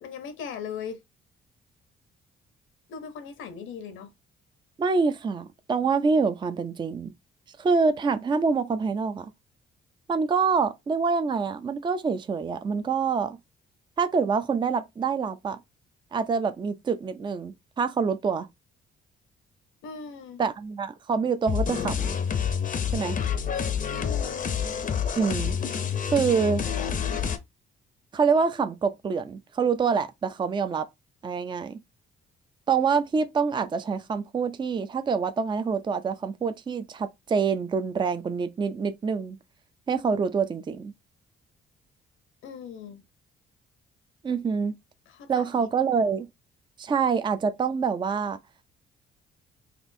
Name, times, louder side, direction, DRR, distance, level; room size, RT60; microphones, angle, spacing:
voice 1, 0.0-1.0 2.9-4.1 19.8-20.4 23.9-24.4 42.4-43.0 45.1-45.7, left 6 dB, 80° left, 0.8 m, -39 dB
voice 2, 4.8-7.1 7.6-9.3 10.1-13.4 14.0-15.6 16.1-18.5 20.4-22.2 22.9-23.2 25.2-25.5 26.1-26.6 28.1-30.9 31.2-31.8 32.7-39.4 39.9-40.9 44.2-44.8 45.3-46.3 46.8-48.4, right 5 dB, 25° right, 0.4 m, -26 dB
sound 1, 21.5-27.4, left 7 dB, 45° left, 0.6 m, -28 dB
4.2 x 2.4 x 2.6 m
cardioid pair, 90°, 20 cm